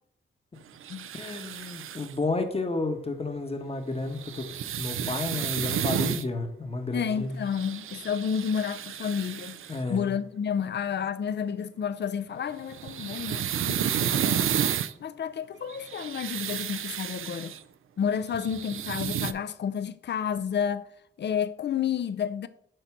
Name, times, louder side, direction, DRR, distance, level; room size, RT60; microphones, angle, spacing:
sound 1, 0.8-2.1 4.1-6.3 7.5-9.8 12.5-14.9 15.7-17.6 18.2-19.3, right 9 dB, 75° right, 0.4 m, -31 dB
voice 1, 1.2-4.5 4.8-7.4 9.7-10.1, left 2 dB, 30° left, 1.0 m, -31 dB
voice 2, 6.9-9.6 9.9-13.9 14.1-14.5 15.0-17.5 18.0-20.8 21.2-22.5, left 7 dB, 55° left, 0.5 m, -30 dB
7.8 x 2.7 x 5.9 m
cardioid pair, 80°, 21 cm